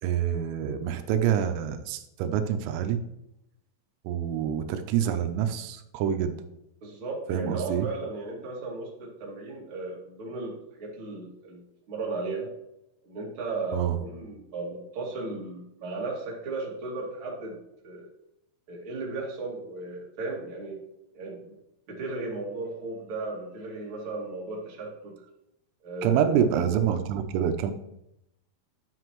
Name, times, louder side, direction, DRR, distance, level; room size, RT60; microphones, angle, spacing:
voice 1, 0.0-3.0 4.0-6.4 7.3-7.9 13.7-14.0 26.0-27.7, right 9 dB, 85° right, 8 dB, 3.3 m, -26 dB
voice 2, 6.8-12.5 13.0-17.6 17.8-18.1 18.7-20.8 21.1-21.6 21.9-25.2 25.8-26.3, right 3 dB, 40° right, -3 dB, 1.9 m, -35 dB
12.0 x 7.8 x 3.1 m, 0.84 s
omnidirectional pair, 5.8 m